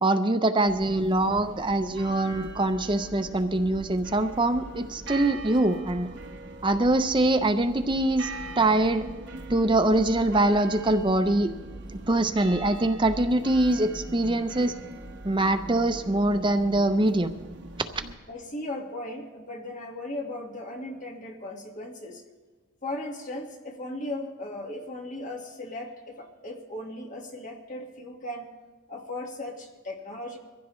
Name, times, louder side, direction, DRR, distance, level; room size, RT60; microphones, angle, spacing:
voice 1, 0.0-6.1 6.6-8.3 8.6-9.0 9.5-11.5 11.9-14.7 15.2-17.3, right 2 dB, 20° right, 8 dB, 0.5 m, -23 dB
sound 1, 0.7-18.2, right 2 dB, 55° right, 1.2 m, -41 dB
voice 2, 18.3-22.2 22.8-28.5 28.9-30.4, left 1 dB, 35° left, 1 dB, 1.6 m, -37 dB
23.0 x 15.5 x 3.1 m, 1.3 s
head